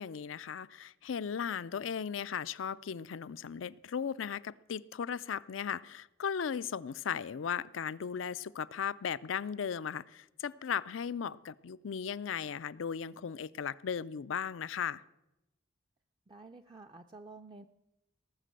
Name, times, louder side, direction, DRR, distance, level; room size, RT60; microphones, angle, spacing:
voice 1, 0.0-15.0, left 7 dB, 90° left, 16 dB, 0.4 m, -37 dB
voice 2, 16.3-17.7, right 3 dB, 25° right, 5 dB, 0.4 m, -50 dB
18.5 x 6.6 x 7.6 m, 0.92 s
head